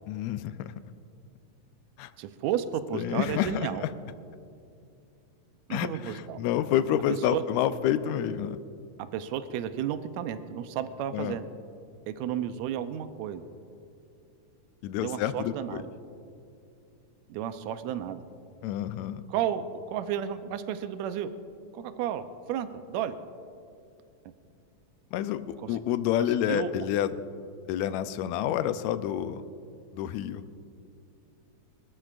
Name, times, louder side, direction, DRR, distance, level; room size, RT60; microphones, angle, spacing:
voice 1, 0.1-0.7 2.0-2.1 2.9-3.9 5.7-8.6 11.1-11.4 14.8-15.8 18.6-19.2 25.1-27.1 27.7-29.4 29.9-30.4, left 10 dB, 85° left, 11 dB, 1.9 m, -29 dB
voice 2, 2.2-3.8 5.7-6.4 7.3-7.4 9.1-11.5 12.1-13.4 15.0-15.9 17.3-18.2 19.3-21.3 21.7-23.2 25.6-25.8 26.2-26.7, right 10 dB, 80° right, 10 dB, 1.9 m, -32 dB
24.0 x 13.5 x 2.5 m, 2.5 s
omnidirectional pair, 3.3 m